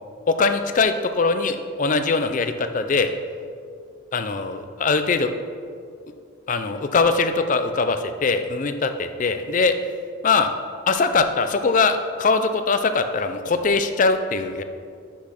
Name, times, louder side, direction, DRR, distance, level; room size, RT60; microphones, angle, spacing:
voice 1, 0.3-3.1 4.1-5.3 6.5-9.7 10.2-10.5 10.9-14.6, left 4 dB, 40° left, 9 dB, 0.4 m, -21 dB
6.1 x 6.1 x 5.7 m, 2.3 s
head